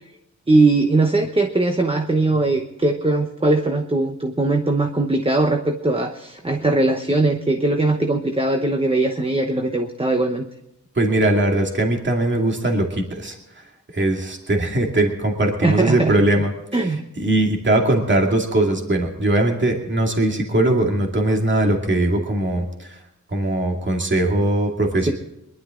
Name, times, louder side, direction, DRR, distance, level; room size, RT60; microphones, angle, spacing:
voice 1, 0.5-10.4 15.6-16.1 16.7-17.0 25.1-25.2, right 2 dB, 20° right, 4 dB, 0.9 m, -20 dB
voice 2, 11.0-13.4 13.9-16.5 17.2-23.0 23.3-25.1, right 1 dB, 40° right, 1 dB, 2.4 m, -20 dB
23.0 x 12.0 x 3.8 m, 0.87 s
wide cardioid pair, 140°, 30 cm